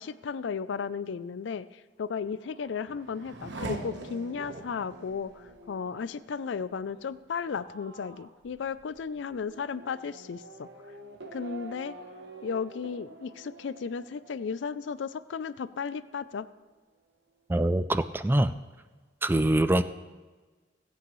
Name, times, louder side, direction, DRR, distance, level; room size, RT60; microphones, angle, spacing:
voice 1, 0.0-1.7 2.0-10.7 11.3-11.9 12.4-16.5, left 6 dB, 75° left, 16 dB, 0.4 m, -34 dB
Race car auto racing / Accelerating revving vroom, 2.1-15.4 15.7-16.4, right 2 dB, 70° right, 1.1 m, -45 dB
voice 2, 17.5-18.5 19.2-19.8, right 1 dB, 10° right, 12 dB, 0.3 m, -24 dB
20.5 x 8.4 x 3.1 m, 1.3 s
head